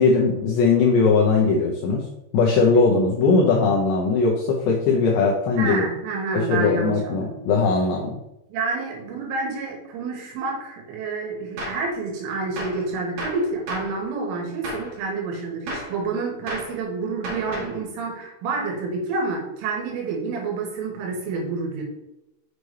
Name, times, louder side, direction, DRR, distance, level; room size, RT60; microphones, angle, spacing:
voice 1, 0.0-2.1 2.3-5.9 6.3-8.2, left 4 dB, 85° left, -1 dB, 2.5 m, -19 dB
voice 2, 5.6-7.4 8.5-21.8, right 4 dB, 75° right, 0 dB, 3.7 m, -28 dB
Gunshot gunfire, 11.6-11.9 12.6-12.9 13.2-14.0 14.6-14.9 15.7-16.0 16.5-16.8 17.2-17.8, equal, 55° right, 2.7 m, -33 dB
6.7 x 6.7 x 3.2 m, 0.90 s
omnidirectional pair, 5.9 m